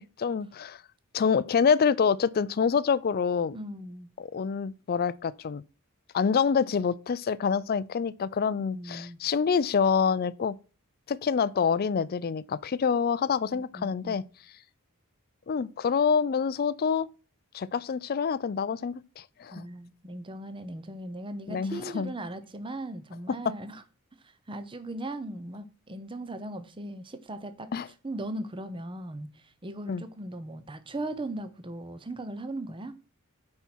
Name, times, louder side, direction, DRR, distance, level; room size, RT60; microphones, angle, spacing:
voice 1, 0.2-0.8 1.1-3.6 4.2-5.6 6.1-10.6 11.1-14.2 15.5-17.1 17.5-19.6 21.5-22.1 27.7-27.9 29.9-30.0, left 6 dB, 40° left, 0.4 m, -26 dB
voice 2, 3.5-4.1 8.6-9.2 13.5-14.2 19.5-23.8 24.2-32.9, right 1 dB, 20° right, 0.7 m, -38 dB
9.1 x 4.4 x 6.1 m
head